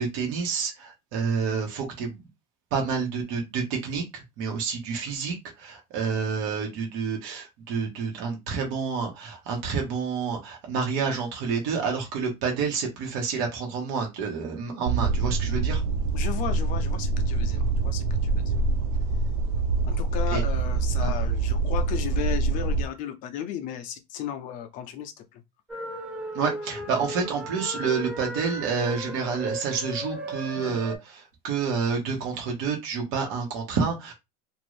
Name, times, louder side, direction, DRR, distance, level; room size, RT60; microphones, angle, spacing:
voice 1, 0.0-2.2 2.7-15.8 20.3-20.4 21.0-21.1 26.3-34.1, right 5 dB, 60° right, 1.2 m, -29 dB
sound 1, 14.9-22.9, right 3 dB, 75° right, 0.4 m, -25 dB
voice 2, 16.1-18.6 19.9-25.4, left 10 dB, 40° left, 0.5 m, -35 dB
sound 2, 25.7-31.0, right 1 dB, 5° right, 0.7 m, -36 dB
2.6 x 2.5 x 3.1 m
supercardioid pair, 150°, 20 cm